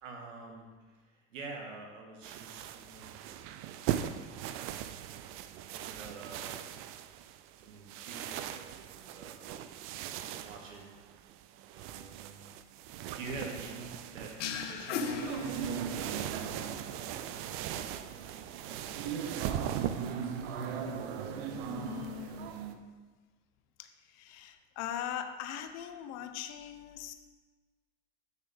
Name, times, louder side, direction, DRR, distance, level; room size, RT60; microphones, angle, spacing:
voice 1, 0.0-3.2 4.6-5.2 5.7-6.7 7.5-9.8 10.4-10.9 11.7-12.5 13.1-14.4 14.7-16.8, right 3 dB, 75° right, 1 dB, 1.8 m, -47 dB
sound 1, 2.2-20.1, right 11 dB, 35° right, 0.4 m, -40 dB
sound 2, 14.4-16.2, left 6 dB, 70° left, 0.9 m, -37 dB
sound 3, 15.0-22.8, right 7 dB, 55° right, 0.8 m, -39 dB
voice 2, 21.7-22.5 23.8-27.1, left 10 dB, 45° left, 8 dB, 0.8 m, -41 dB
8.3 x 6.6 x 3.5 m, 1.4 s
hypercardioid pair, 100°, 38 cm